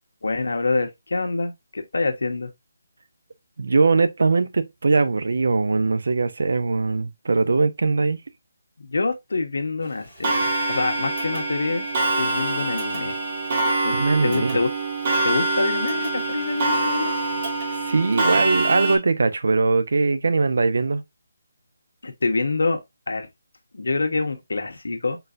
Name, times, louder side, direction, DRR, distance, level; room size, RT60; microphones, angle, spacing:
voice 1, 0.2-2.5 8.8-11.9 12.2-13.2 13.8-14.7 15.2-17.2 22.0-22.8 23.1-23.3 23.7-25.2, left 3 dB, 85° left, 1.0 m, -26 dB
voice 2, 3.6-8.2 13.9-14.6 17.7-21.0, right 3 dB, 65° right, 0.6 m, -21 dB
Clock, 10.2-19.0, right 2 dB, 30° right, 1.3 m, -25 dB
4.0 x 3.9 x 2.5 m
hypercardioid pair, 175°, 0 cm